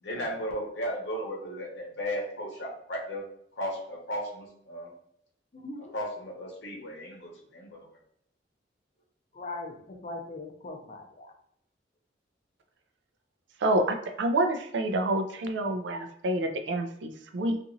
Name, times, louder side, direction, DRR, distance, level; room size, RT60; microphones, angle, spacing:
voice 1, 0.0-3.2 3.6-4.9 5.8-7.9, equal, 75° left, -2 dB, 0.8 m, -35 dB
voice 2, 5.5-5.9 9.3-11.3, left 2 dB, 40° left, 2 dB, 0.5 m, -40 dB
voice 3, 13.6-17.6, right 1 dB, 90° right, 6 dB, 0.4 m, -28 dB
2.8 x 2.5 x 2.6 m, 0.71 s
head